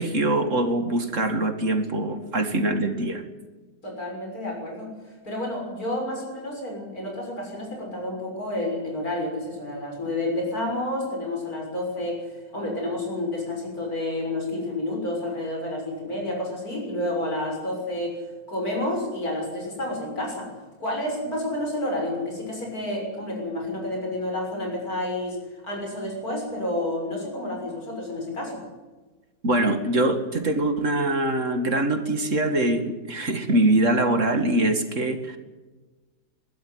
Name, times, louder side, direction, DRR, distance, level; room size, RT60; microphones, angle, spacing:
voice 1, 0.0-3.2 29.4-35.4, right 1 dB, 50° right, 8 dB, 2.4 m, -23 dB
voice 2, 3.8-4.9 5.2-18.2 18.5-20.5 20.8-25.4 25.6-28.6, left 1 dB, 60° left, 0 dB, 7.3 m, -30 dB
22.0 x 14.0 x 9.6 m, 1.2 s
omnidirectional pair, 1.7 m